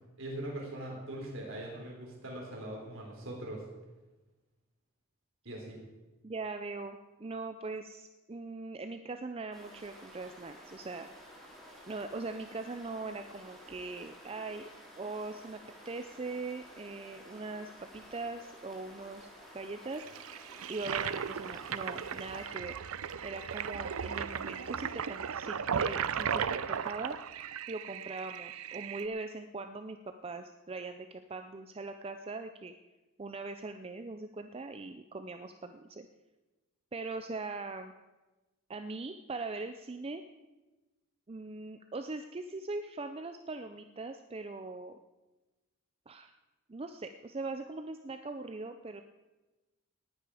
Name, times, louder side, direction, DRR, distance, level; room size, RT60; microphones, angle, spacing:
voice 1, 0.2-3.7 5.4-5.8, right 1 dB, 65° right, -1 dB, 4.1 m, -41 dB
voice 2, 6.2-11.1 11.9-14.7 15.0-20.0 20.7-22.7 23.2-27.2 27.7-32.7 33.2-36.1 36.9-37.9 38.7-40.2 41.3-45.0 46.1-46.3 46.7-49.0, right 3 dB, 25° right, 8 dB, 0.5 m, -41 dB
sound 1, 9.5-22.5, equal, ahead, 3.2 m, -53 dB
Toilet flush, 19.9-29.1, right 7 dB, 85° right, 0.5 m, -36 dB
19.0 x 9.1 x 4.9 m, 1.1 s
head